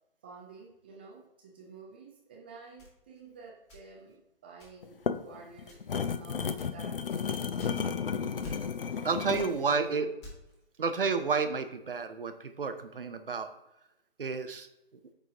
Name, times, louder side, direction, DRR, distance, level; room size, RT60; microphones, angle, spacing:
voice 1, 0.2-5.0 5.2-7.5 9.2-10.0, right 3 dB, 10° right, -2 dB, 0.4 m, -50 dB
sound 1, 2.8-4.2 4.6-5.1 5.6-6.1 6.6-8.1 8.4-9.0 9.3-10.6, left 2 dB, 30° left, 1.9 m, -49 dB
kettlebell on concrete rock stone metal drag impact, 4.8-9.6, left 6 dB, 70° left, 0.6 m, -33 dB
voice 2, 9.0-10.1 10.8-13.5 14.2-14.7, right 5 dB, 65° right, 8 dB, 0.9 m, -30 dB
9.2 x 3.9 x 3.7 m, 0.87 s
figure-of-eight pair, 130°, 29 cm